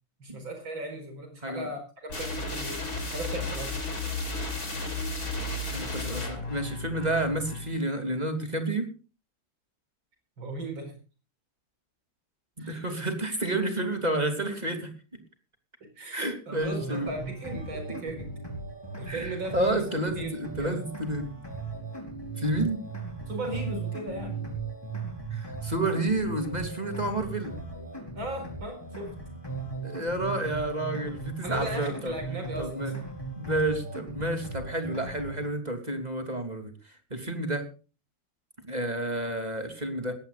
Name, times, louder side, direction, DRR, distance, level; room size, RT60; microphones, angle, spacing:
voice 1, 0.2-3.8 10.4-11.0 12.6-12.9 13.2-13.3 15.8-18.3 19.0-19.9 20.2-20.3 20.6-20.8 23.3-24.5 28.2-29.1 31.4-32.9, right 1 dB, 70° right, 5 dB, 5.4 m, -37 dB
sound 1, 2.1-7.7, left 2 dB, 45° left, 4.9 m, -33 dB
voice 2, 5.6-8.9 12.6-14.9 16.1-17.1 19.0-21.3 22.4-22.8 25.3-27.5 29.8-32.2 32.6-32.9 33.4-36.7 37.1-37.7 38.7-40.1, right 1 dB, 20° right, 6 dB, 3.2 m, -30 dB
sound 2, 16.6-35.5, right 3 dB, 10° left, 4.7 m, -38 dB
20.5 x 16.5 x 2.5 m, 0.33 s
omnidirectional pair, 2.2 m